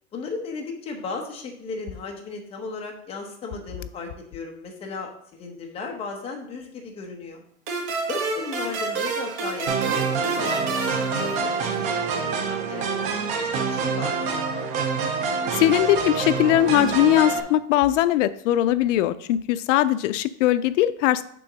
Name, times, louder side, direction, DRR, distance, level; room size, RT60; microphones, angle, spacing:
voice 1, 0.1-7.4 8.1-14.4, left 4 dB, 15° left, 2 dB, 0.8 m, -36 dB
sound 1, 7.7-12.0, right 4 dB, 40° right, 1.6 m, -29 dB
sound 2, 9.7-17.4, right 5 dB, 20° right, 0.4 m, -26 dB
voice 2, 15.5-21.2, left 13 dB, 80° left, 14 dB, 0.5 m, -20 dB
6.9 x 3.5 x 6.1 m, 0.68 s
supercardioid pair, 175°, 36 cm